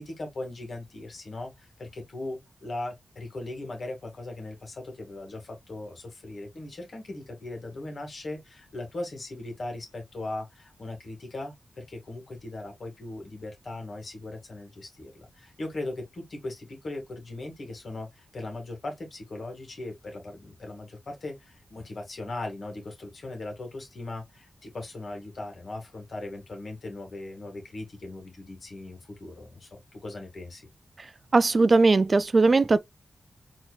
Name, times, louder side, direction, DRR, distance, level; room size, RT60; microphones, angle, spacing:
voice 1, 0.0-30.6, left 2 dB, 60° left, 1.7 m, -39 dB
voice 2, 31.3-32.8, right 3 dB, 45° right, 0.3 m, -19 dB
4.4 x 2.9 x 2.2 m
cardioid pair, 55°, 0 cm